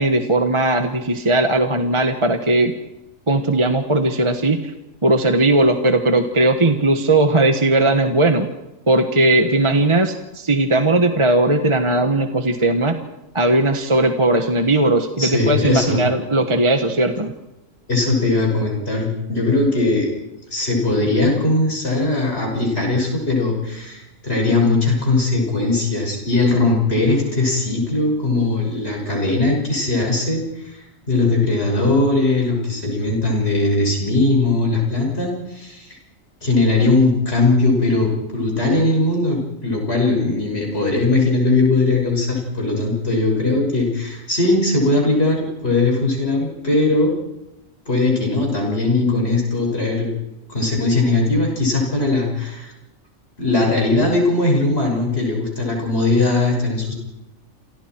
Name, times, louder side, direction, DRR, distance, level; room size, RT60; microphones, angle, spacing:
voice 1, 0.0-2.7 3.3-4.7 5.0-8.5 8.9-13.0 13.3-17.3, right 2 dB, 25° right, 6 dB, 1.4 m, -18 dB
voice 2, 15.2-16.0 17.9-20.1 20.5-30.8 31.1-36.0 36.4-47.1 47.9-50.1 50.5-52.7 53.4-56.9, left 2 dB, 50° left, -1 dB, 6.5 m, -19 dB
29.0 x 27.5 x 4.6 m, 0.96 s
omnidirectional pair, 1.4 m